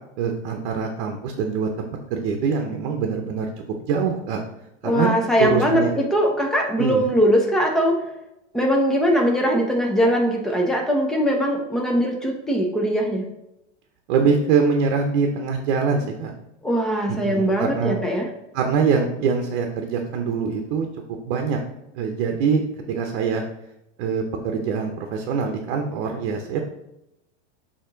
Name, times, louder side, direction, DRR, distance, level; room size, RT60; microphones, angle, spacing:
voice 1, 0.2-1.7 2.1-4.4 4.8-5.1 5.4-5.9 6.8-7.1 14.1-16.3 17.1-17.9 18.5-20.9 21.2-21.6 21.9-23.4 24.0-26.6, right 5 dB, 50° right, 4 dB, 0.8 m, -24 dB
voice 2, 4.8-8.1 8.5-13.2 16.6-18.3, equal, ahead, 0 dB, 0.5 m, -21 dB
7.0 x 2.9 x 5.0 m, 0.88 s
supercardioid pair, 160°, 37 cm